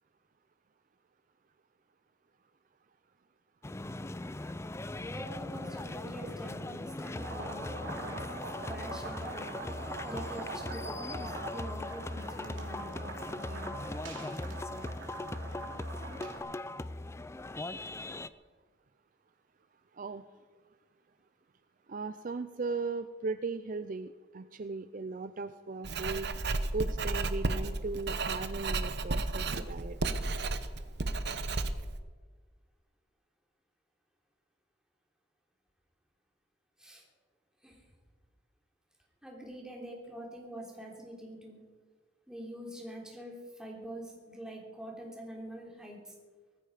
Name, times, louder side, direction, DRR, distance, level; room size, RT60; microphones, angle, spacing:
sound 1, 3.6-18.3, left 2 dB, 15° left, 0.4 m, -39 dB
voice 1, 5.1-8.2 8.6-9.5 10.0-13.8 18.0-18.1 36.8-37.0 37.6-37.8 39.2-41.6 42.3-46.1, equal, 5° right, -2 dB, 3.5 m, -45 dB
sound 2, 7.1-16.4, right 3 dB, 80° right, 2.8 m, -44 dB
voice 2, 21.9-26.3 26.7-30.0, right 3 dB, 45° right, 11 dB, 0.5 m, -37 dB
Writing, 25.8-32.0, right 2 dB, 60° right, 1.0 m, -33 dB
19.0 x 15.0 x 5.0 m, 1.4 s
head